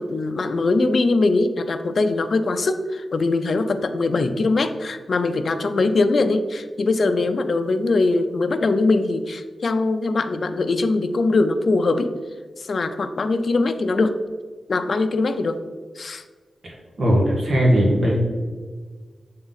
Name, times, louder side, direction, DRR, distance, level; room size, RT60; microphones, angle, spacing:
voice 1, 0.0-12.1 12.6-14.1 14.7-15.6 16.0-16.2, left 3 dB, 55° left, 8 dB, 0.5 m, -21 dB
voice 2, 16.6-18.2, equal, 55° right, -2 dB, 1.3 m, -19 dB
8.0 x 3.8 x 4.0 m, 1.5 s
wide cardioid pair, 140°, 0 cm